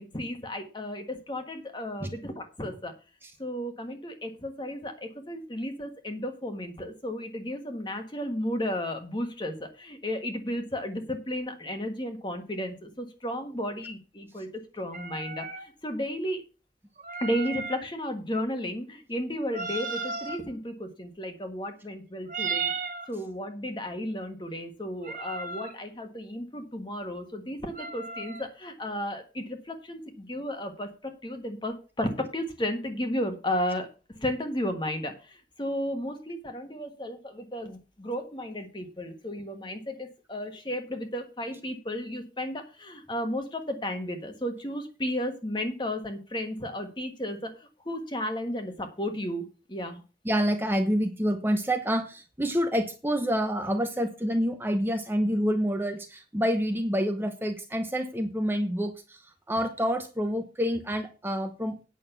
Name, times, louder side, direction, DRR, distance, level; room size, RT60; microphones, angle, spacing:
voice 1, 0.0-2.9 3.4-14.5 14.7-16.4 17.2-22.7 23.1-50.0, left 1 dB, 25° left, 6 dB, 1.5 m, -33 dB
sound 1, 14.9-15.7 17.0-17.8 19.5-20.4 22.3-23.1 25.0-25.8 27.7-28.5, right 4 dB, 45° right, 1.7 m, -35 dB
voice 2, 50.2-59.2 59.5-61.8, equal, 10° right, 6 dB, 0.9 m, -27 dB
9.1 x 6.4 x 6.9 m, 0.33 s
head